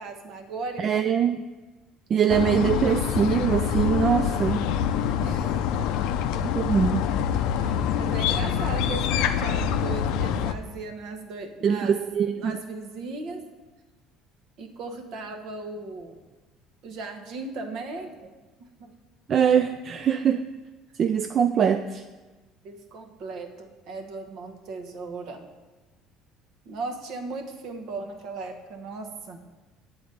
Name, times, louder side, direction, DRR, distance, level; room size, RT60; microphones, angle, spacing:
voice 1, 0.0-0.9 5.2-5.9 7.6-12.0 12.3-13.4 14.6-16.2 16.8-18.3 18.6-18.9 22.6-25.5 26.6-29.4, right 3 dB, 65° right, 4 dB, 1.0 m, -37 dB
voice 2, 0.8-1.4 2.1-4.6 6.4-7.1 11.6-12.6 19.3-20.4 21.0-22.0, right 8 dB, 45° right, 8 dB, 0.3 m, -23 dB
sound 1, 2.3-10.5, left 8 dB, 75° left, 0.4 m, -25 dB
8.5 x 4.0 x 6.7 m, 1.2 s
supercardioid pair, 105°, 0 cm